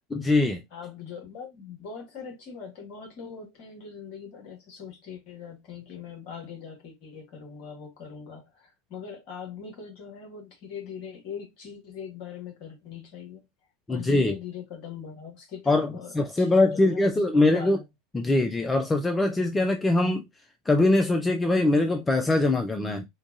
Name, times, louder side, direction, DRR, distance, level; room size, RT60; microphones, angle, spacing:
voice 1, 0.1-0.6 13.9-14.3 15.7-17.8 18.1-20.2 20.7-23.0, left 2 dB, 15° left, 0.4 m, -22 dB
voice 2, 0.7-13.4 13.9-17.8, left 7 dB, 50° left, 1.3 m, -41 dB
3.7 x 2.3 x 2.5 m
figure-of-eight pair, 80°, 0 cm